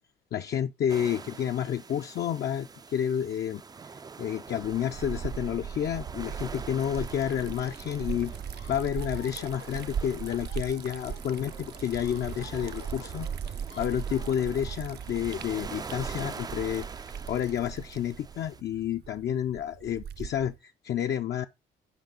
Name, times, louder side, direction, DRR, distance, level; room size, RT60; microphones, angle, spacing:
voice 1, 0.3-3.9 4.2-8.3 8.7-13.3 13.8-16.9 17.3-21.5, left 9 dB, 55° left, 0.5 m, -30 dB
sound 1, 0.9-18.6, right 5 dB, 20° right, 0.3 m, -45 dB
Liquid, 4.5-20.6, right 7 dB, 55° right, 0.7 m, -39 dB
sound 2, 7.6-14.5, left 5 dB, 85° left, 3.3 m, -51 dB
8.1 x 5.2 x 5.1 m
cardioid pair, 90°, 20 cm